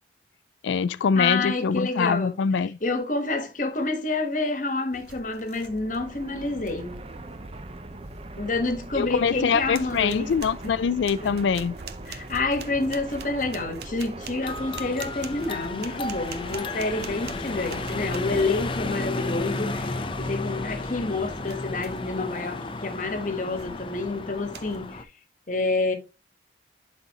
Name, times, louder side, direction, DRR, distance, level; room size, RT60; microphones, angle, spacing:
voice 1, 0.6-2.8 9.0-11.7, left 6 dB, 85° left, 0.4 m, -24 dB
voice 2, 1.1-7.1 8.4-10.3 10.6-10.7 11.2-11.4 12.1-25.1 25.5-25.9, left 3 dB, 45° left, 1.2 m, -28 dB
sound 1, 4.9-6.1 6.4-6.9 8.8-8.9 9.4-19.0 21.4-22.2 22.6-22.9 23.6-24.0 24.5-24.8, right 5 dB, 60° right, 0.8 m, -44 dB
Fixed-wing aircraft airplane, 5.4-21.8, right 2 dB, 30° right, 0.7 m, -42 dB
sound 2, 14.4-25.0, left 2 dB, 30° left, 0.5 m, -33 dB
11.5 x 4.1 x 2.8 m
head